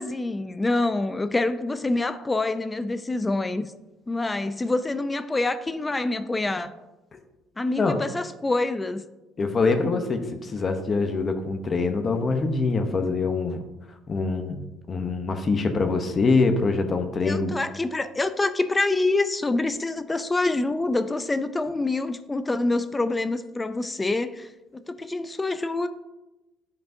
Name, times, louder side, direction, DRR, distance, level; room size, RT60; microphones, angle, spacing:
voice 1, 0.0-3.7 4.1-6.7 7.6-9.0 17.2-25.9, left 2 dB, 15° left, 0.4 m, -26 dB
voice 2, 9.4-13.6 14.1-14.6 14.9-17.5, left 3 dB, 35° left, 0.8 m, -24 dB
9.2 x 5.3 x 2.7 m
cardioid pair, 100°, 0 cm